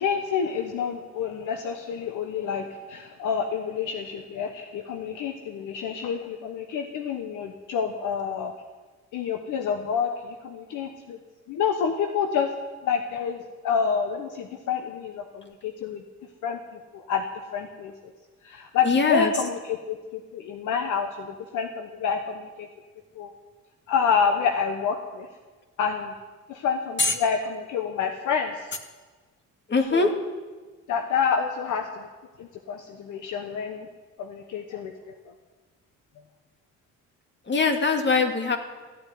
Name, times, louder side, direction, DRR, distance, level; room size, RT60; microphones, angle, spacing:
voice 1, 0.0-8.5 9.1-11.2 11.5-12.5 12.8-16.0 16.4-16.6 16.9-17.2 17.5-17.9 18.4-22.7 23.1-23.3 23.9-25.3 25.8-26.1 26.5-28.7 29.9-30.1 30.9-32.1 32.4-33.9 34.2-34.9, left 6 dB, 80° left, 5 dB, 1.2 m, -28 dB
voice 2, 18.8-19.3 27.0-27.1 29.7-30.1 37.5-38.6, left 4 dB, 35° left, 5 dB, 2.1 m, -22 dB
15.0 x 8.7 x 9.3 m, 1.3 s
cardioid pair, 90°, 30 cm